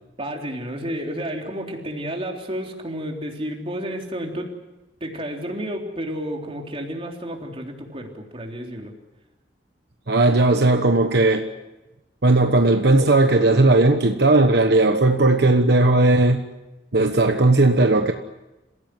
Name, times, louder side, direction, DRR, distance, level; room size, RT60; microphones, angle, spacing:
voice 1, 0.2-4.5 5.0-8.9, equal, 35° right, 1 dB, 3.6 m, -31 dB
voice 2, 10.1-11.4 12.2-16.4 16.9-18.1, right 2 dB, 65° right, 6 dB, 1.2 m, -17 dB
27.5 x 16.5 x 9.4 m, 1.1 s
head